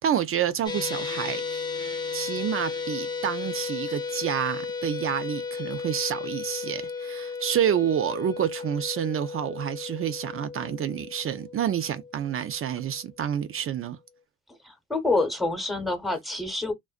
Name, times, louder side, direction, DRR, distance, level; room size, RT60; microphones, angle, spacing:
voice 1, 0.0-1.7 2.1-14.0, right 9 dB, 45° right, 0.4 m, -28 dB
sound 1, 0.7-13.0, left 5 dB, 15° left, 0.5 m, -34 dB
voice 2, 14.6-16.7, left 2 dB, ahead, 0.8 m, -27 dB
2.5 x 2.1 x 2.4 m
cardioid pair, 90°, 30 cm